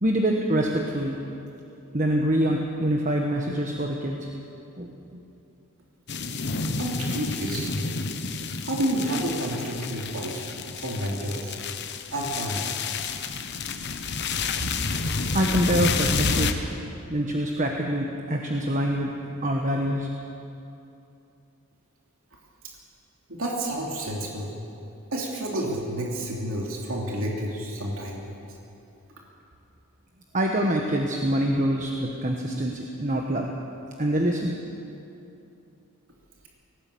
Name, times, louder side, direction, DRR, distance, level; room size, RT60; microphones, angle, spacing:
voice 1, 0.0-1.2 1.9-4.3 4.8-4.9 15.3-16.6 17.1-19.1 19.4-20.1 30.3-33.5 34.0-34.5, right 1 dB, 35° right, 1 dB, 1.3 m, -25 dB
sound 1, 6.1-16.5, left 4 dB, 50° left, 1.1 m, -29 dB
voice 2, 6.8-7.7 8.6-10.4 10.8-11.5 12.1-12.8 23.3-24.5 25.1-28.2, right 1 dB, 65° right, -2 dB, 3.0 m, -30 dB
19.0 x 17.5 x 8.6 m, 2.7 s
head